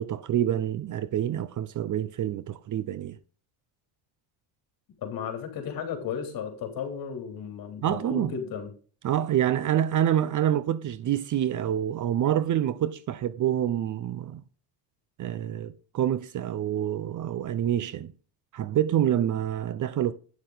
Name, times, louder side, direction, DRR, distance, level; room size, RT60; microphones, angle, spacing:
voice 1, 0.0-3.2 7.8-8.3 9.0-14.4 15.2-18.1 18.5-20.1, right 11 dB, 40° right, 0.7 m, -27 dB
voice 2, 5.0-8.7, left 7 dB, 50° left, 3.3 m, -34 dB
9.6 x 6.5 x 4.0 m
cardioid pair, 110°, 46 cm